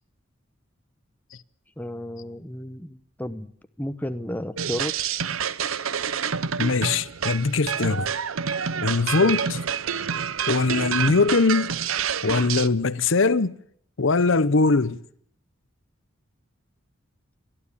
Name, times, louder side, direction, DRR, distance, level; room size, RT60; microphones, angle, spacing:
voice 1, 1.8-3.5 3.8-5.0 9.2-9.4, equal, 10° left, 0.9 m, -33 dB
sound 1, 4.6-12.7, right 7 dB, 85° right, 0.8 m, -28 dB
voice 2, 6.6-8.1 8.8-9.6 10.5-11.7 12.2-13.5 14.0-15.0, left 3 dB, 70° left, 0.8 m, -21 dB
29.0 x 12.0 x 8.6 m
head